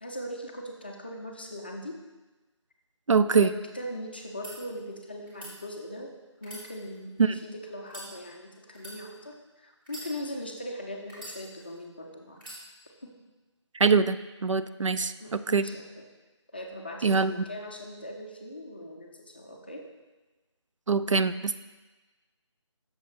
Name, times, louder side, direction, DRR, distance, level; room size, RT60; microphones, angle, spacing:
voice 1, 0.0-2.0 3.1-6.1 6.4-12.6 13.0-13.1 14.9-16.1 16.5-19.9, equal, 20° left, 1 dB, 0.5 m, -40 dB
voice 2, 3.1-3.5 7.2-7.3 13.7-15.6 17.0-17.4 20.9-21.6, right 5 dB, 80° right, 12 dB, 0.4 m, -24 dB
sound 1, 4.2-4.5 5.3-5.5 6.4-7.3 7.8-8.1 8.7-9.0 9.8-10.5 11.1-11.8 12.4-12.6, right 1 dB, 20° right, 2.2 m, -44 dB
7.4 x 6.5 x 3.6 m, 1.2 s
figure-of-eight pair, 160°, 16 cm